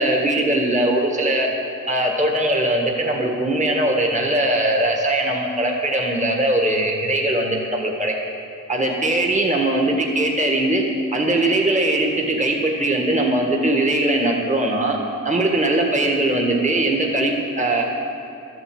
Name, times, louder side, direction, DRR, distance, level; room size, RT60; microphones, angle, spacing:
voice 1, 0.0-1.5 1.9-8.1 8.7-10.8 11.1-15.0 15.2-17.8, right 1 dB, 20° right, 1 dB, 1.7 m, -20 dB
12.5 x 8.1 x 7.7 m, 2.8 s
wide cardioid pair, 95°, 32 cm